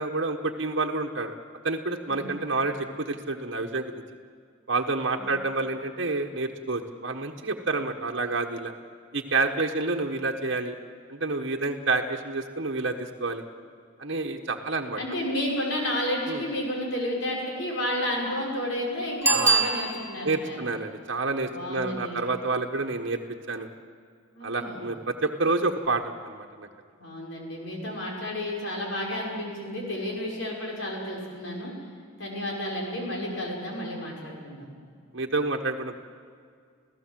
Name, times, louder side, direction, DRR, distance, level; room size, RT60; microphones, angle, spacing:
voice 1, 0.0-1.3 1.6-3.9 4.7-8.7 9.1-10.7 11.1-13.4 14.0-15.2 16.3-16.4 19.3-19.7 20.2-23.2 23.5-23.7 24.4-26.7 35.1-36.0, right 3 dB, 60° right, 0 dB, 1.3 m, -29 dB
voice 2, 15.0-20.6 21.5-22.2 24.3-24.8 27.0-31.7 32.2-34.7, left 1 dB, 70° left, -2 dB, 6.0 m, -31 dB
Bicycle bell, 19.2-20.4 25.8-25.9, right 4 dB, 10° right, 1.5 m, -24 dB
28.5 x 16.0 x 7.6 m, 2.1 s
head